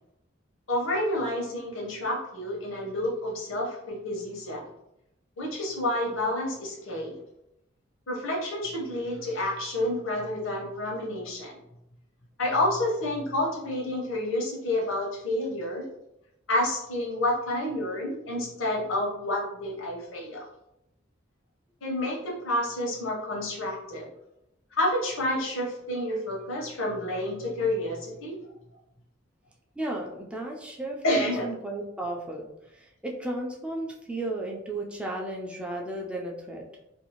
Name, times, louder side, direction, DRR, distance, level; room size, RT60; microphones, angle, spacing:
voice 1, 0.7-4.6 5.4-7.2 8.1-11.6 12.4-15.9 16.5-20.5 21.8-24.1 24.8-28.4 31.0-31.5, left 1 dB, 85° left, -2 dB, 0.9 m, -29 dB
voice 2, 29.8-36.6, right 1 dB, 5° right, -1 dB, 0.4 m, -34 dB
2.6 x 2.4 x 2.9 m, 0.83 s
head